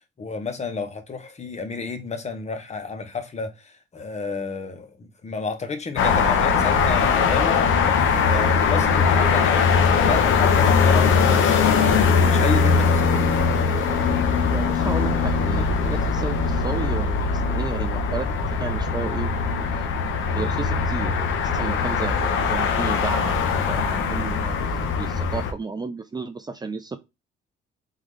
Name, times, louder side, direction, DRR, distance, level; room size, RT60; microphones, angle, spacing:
voice 1, 0.2-7.7 8.2-9.7 10.0-13.0, left 4 dB, 35° left, 1.1 m, -31 dB
sound 1, 6.0-25.5, left 5 dB, 80° left, 1.0 m, -21 dB
voice 2, 14.5-19.3 19.7-19.9 20.3-24.5 25.0-27.0, right 4 dB, 20° right, 0.5 m, -33 dB
3.7 x 3.6 x 3.2 m
cardioid pair, 85°, 20 cm